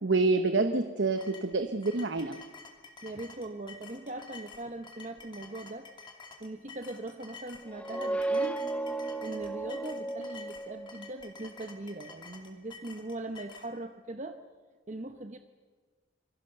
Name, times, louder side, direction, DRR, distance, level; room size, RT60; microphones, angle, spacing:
voice 1, 0.0-2.4, right 3 dB, 60° right, 8 dB, 1.1 m, -27 dB
voice 2, 0.6-0.9 3.0-5.9 6.4-8.6 9.2-14.4 14.9-15.4, right 2 dB, 35° right, 7 dB, 0.9 m, -40 dB
sound 1, 1.2-13.7, left 4 dB, 25° left, 2.5 m, -50 dB
sound 2, 7.7-11.2, right 2 dB, 5° left, 0.7 m, -34 dB
27.0 x 23.0 x 6.8 m, 1.5 s
head